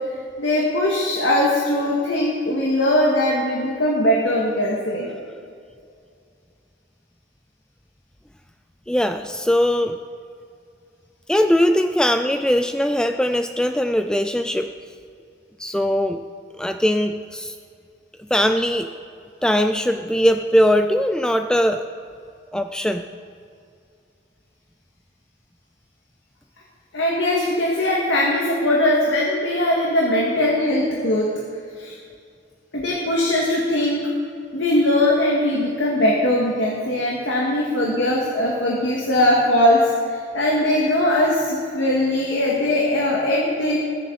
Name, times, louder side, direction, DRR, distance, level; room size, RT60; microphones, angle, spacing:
voice 1, 0.4-5.1 26.9-31.3 31.8-32.0 32.7-34.0 34.5-43.8, left 1 dB, 70° left, -4 dB, 2.0 m, -20 dB
voice 2, 8.9-10.0 11.3-14.7 15.6-16.2 16.6-17.5 18.3-18.9 19.4-21.8 22.5-23.0, equal, 5° left, 7 dB, 0.3 m, -20 dB
21.0 x 9.0 x 4.2 m, 2.4 s
head